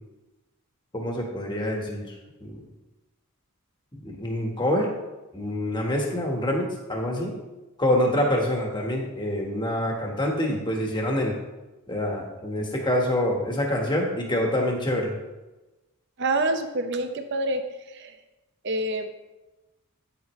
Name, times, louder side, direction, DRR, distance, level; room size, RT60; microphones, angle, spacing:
voice 1, 0.9-2.1 2.4-2.6 3.9-4.9 5.3-7.3 7.8-11.3 11.9-15.2, left 1 dB, 20° left, 0 dB, 1.4 m, -26 dB
voice 2, 16.2-17.6 17.9-18.1 18.6-19.1, right 2 dB, 55° right, 7 dB, 0.7 m, -26 dB
9.3 x 7.8 x 3.2 m, 1.1 s
head